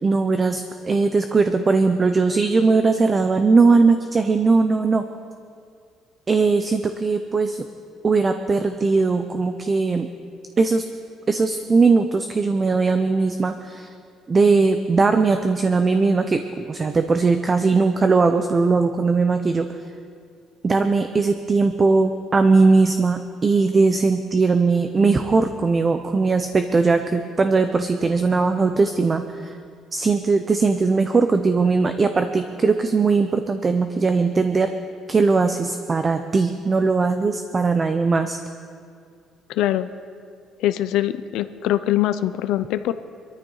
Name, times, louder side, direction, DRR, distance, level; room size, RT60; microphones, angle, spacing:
voice 1, 0.0-5.0 6.3-7.7 8.0-10.1 10.6-10.8 11.3-13.9 14.3-19.7 20.6-29.6 29.9-34.7 35.1-38.4, right 4 dB, 20° right, 8 dB, 0.5 m, -19 dB
voice 2, 39.5-39.9 40.6-42.9, left 13 dB, 80° left, 12 dB, 0.5 m, -22 dB
22.5 x 13.5 x 3.9 m, 2.2 s
cardioid pair, 155°, 0 cm